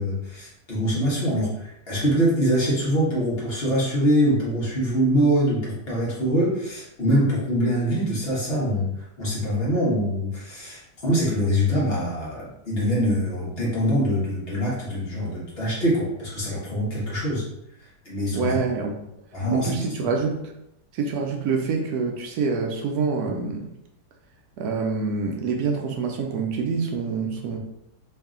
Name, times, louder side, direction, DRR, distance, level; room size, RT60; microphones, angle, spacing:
voice 1, 0.0-17.4 18.0-18.6 19.3-19.9, equal, 40° left, -6 dB, 1.1 m, -24 dB
voice 2, 18.3-18.9 19.5-20.4 20.9-23.7 24.6-27.6, right 4 dB, 75° right, 1 dB, 1.1 m, -26 dB
3.2 x 2.7 x 3.6 m, 0.82 s
omnidirectional pair, 1.7 m